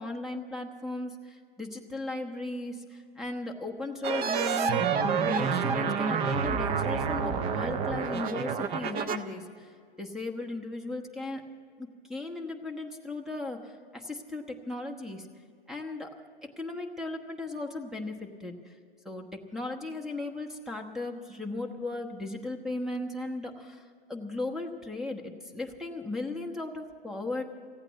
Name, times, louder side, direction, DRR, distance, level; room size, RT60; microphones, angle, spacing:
voice 1, 0.0-4.9 5.1-9.7 10.0-11.4 11.8-15.3 15.7-16.1 16.6-18.7 19.0-19.3 19.5-27.5, left 2 dB, ahead, 3 dB, 1.0 m, -36 dB
sound 1, 4.0-9.2, right 6 dB, 20° right, 0.5 m, -28 dB
15.5 x 8.8 x 9.3 m, 2.2 s
hypercardioid pair, 120°, 31 cm